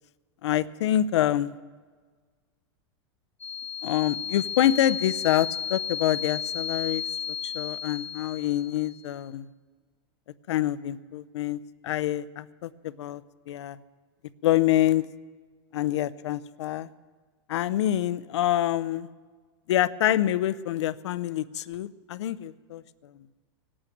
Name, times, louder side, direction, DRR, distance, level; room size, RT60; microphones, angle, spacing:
voice 1, 0.4-1.5 3.8-9.5 10.5-13.2 13.5-13.8 14.4-15.1 15.7-16.9 17.5-19.1 19.7-22.8, left 12 dB, 85° left, 16 dB, 0.7 m, -26 dB
sound 1, 3.4-9.1, left 8 dB, 15° left, 0.9 m, -34 dB
17.5 x 8.8 x 9.2 m, 1.5 s
supercardioid pair, 165°, 14 cm